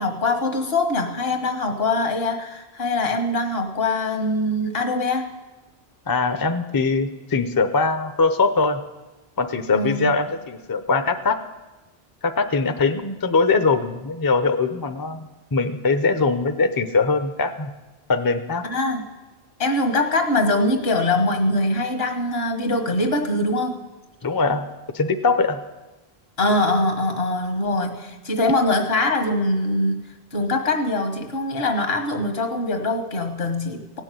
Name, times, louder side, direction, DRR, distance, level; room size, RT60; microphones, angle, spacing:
voice 1, 0.0-5.4 9.7-10.2 18.6-19.1 19.6-23.8 26.4-34.0, left 2 dB, 70° left, 5 dB, 1.7 m, -23 dB
voice 2, 6.1-8.8 9.4-11.4 12.2-17.7 18.1-18.6 24.2-24.6 24.9-25.6, left 4 dB, 25° left, 9 dB, 0.6 m, -21 dB
16.5 x 6.4 x 9.1 m, 1.1 s
omnidirectional pair, 1.0 m